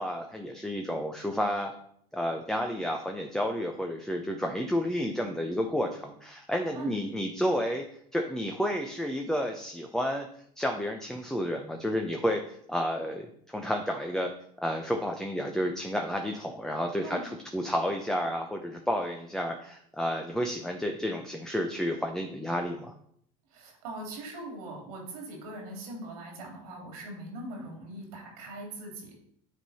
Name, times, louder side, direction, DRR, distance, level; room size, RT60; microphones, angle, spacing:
voice 1, 0.0-1.7 2.1-7.8 8.1-10.3 10.6-14.3 14.6-22.9, equal, 5° left, 3 dB, 0.7 m, -31 dB
voice 2, 23.5-29.2, right 2 dB, 90° right, 0 dB, 2.8 m, -41 dB
9.1 x 3.8 x 4.2 m, 0.66 s
supercardioid pair, 100°, 18 cm